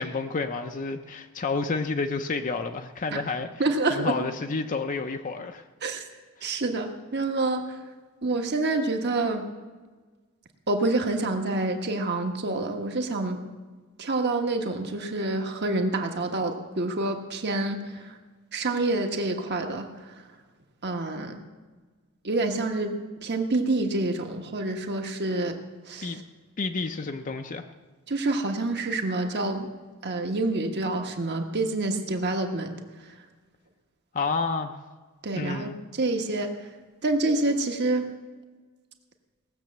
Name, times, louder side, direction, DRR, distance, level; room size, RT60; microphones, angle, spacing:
voice 1, 0.0-5.6 6.4-6.5 26.0-26.2 26.6-27.7 34.1-34.8 35.3-35.8, left 4 dB, 35° left, 6 dB, 0.6 m, -30 dB
voice 2, 3.6-4.2 5.8-6.0 6.4-7.8 8.2-9.5 10.7-13.4 14.0-18.2 18.5-20.2 20.8-21.4 22.2-25.6 25.9-26.2 28.1-29.7 30.0-32.8 35.2-36.5 37.0-38.1, right 2 dB, 50° right, 4 dB, 1.4 m, -27 dB
18.0 x 6.9 x 7.4 m, 1.4 s
head